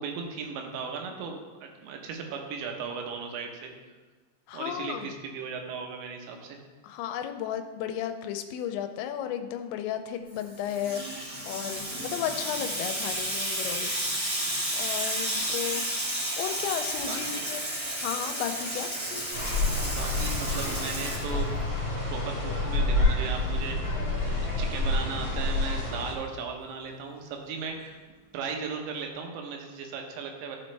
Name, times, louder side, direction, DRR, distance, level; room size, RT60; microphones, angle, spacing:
voice 1, 0.0-3.7 4.5-6.6 11.9-12.1 17.0-17.4 19.8-21.6 22.1-28.0 28.3-30.6, right 5 dB, 80° right, 3 dB, 3.3 m, -37 dB
voice 2, 4.5-5.1 6.8-13.9 14.7-15.9 16.4-17.6 18.0-18.9, left 9 dB, 85° left, 7 dB, 2.9 m, -34 dB
Water tap faucet / Sink (filling or washing), 10.4-21.8, right 1 dB, 30° right, 1.2 m, -32 dB
sound 1, 19.3-26.1, left 2 dB, 25° left, 2.4 m, -28 dB
14.0 x 5.2 x 3.3 m, 1.3 s
omnidirectional pair, 5.2 m